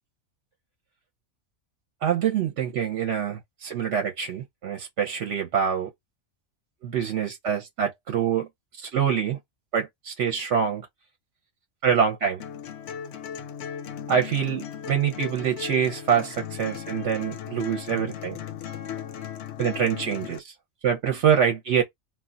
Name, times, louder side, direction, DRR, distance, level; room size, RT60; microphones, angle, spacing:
voice 1, 2.0-5.9 6.8-8.5 8.8-9.4 9.7-10.9 11.8-12.4 14.1-18.4 19.6-20.5 20.8-21.8, right 8 dB, 65° right, 0.8 m, -25 dB
sound 1, 12.4-20.4, left 8 dB, 65° left, 0.7 m, -37 dB
2.3 x 2.3 x 3.7 m
omnidirectional pair, 1.4 m